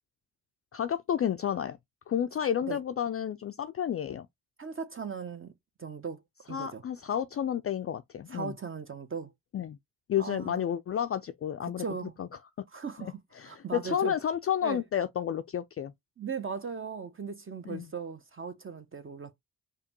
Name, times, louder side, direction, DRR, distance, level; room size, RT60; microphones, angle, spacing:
voice 1, 0.7-1.8 2.1-4.3 6.5-8.5 9.5-9.8 10.1-11.8 12.2-12.3 13.0-15.9 17.7-17.9, left 9 dB, 35° left, 0.4 m, -31 dB
voice 2, 4.6-5.5 5.8-6.2 6.5-6.8 8.3-9.3 10.2-10.6 11.6-12.1 12.7-13.2 13.4-14.2 14.6-14.8 16.2-19.3, right 5 dB, 30° right, 0.8 m, -38 dB
5.0 x 2.3 x 2.9 m
hypercardioid pair, 40°, 41 cm